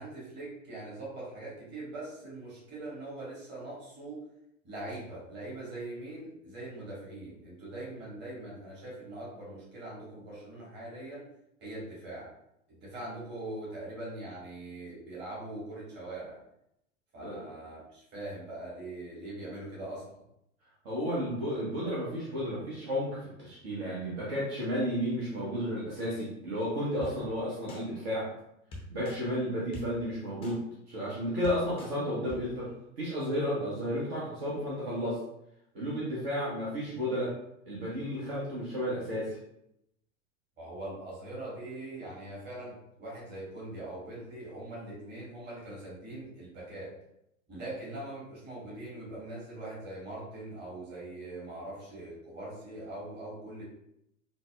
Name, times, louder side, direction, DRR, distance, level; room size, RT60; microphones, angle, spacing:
voice 1, 0.0-4.2 4.6-11.3 11.6-12.3 12.7-16.4 17.1-20.2 38.0-38.2 40.6-46.9 47.5-53.6, right 2 dB, 25° right, -6 dB, 1.5 m, -42 dB
voice 2, 20.8-28.3 28.9-30.6 30.9-32.7 33.0-35.2 35.7-37.3 37.7-39.4, equal, 50° right, -6 dB, 1.1 m, -32 dB
sound 1, 27.0-27.1 27.7-27.8 28.7-29.2 29.7-29.8 30.4-30.5 31.1-31.2 31.4-31.9 32.3-32.4, left 2 dB, 15° left, 0.5 m, -43 dB
3.9 x 2.1 x 2.4 m, 0.80 s
figure-of-eight pair, 95°, 40 cm